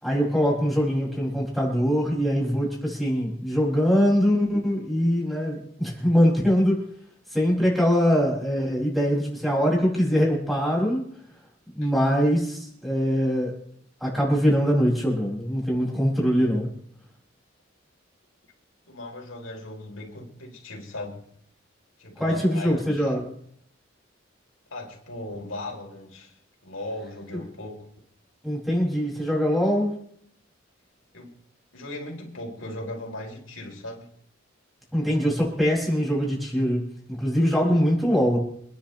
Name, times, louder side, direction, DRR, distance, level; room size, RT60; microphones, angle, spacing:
voice 1, 0.0-6.8 7.3-11.0 11.7-13.6 14.0-16.7 22.2-23.3 28.4-30.0 34.9-36.8 37.1-38.4, equal, ahead, -5 dB, 6.5 m, -23 dB
voice 2, 18.9-21.3 22.0-23.1 24.7-26.3 26.6-27.9 31.1-31.4 31.7-34.1, left 1 dB, 75° left, 0 dB, 4.0 m, -38 dB
28.5 x 10.5 x 3.4 m, 0.64 s
head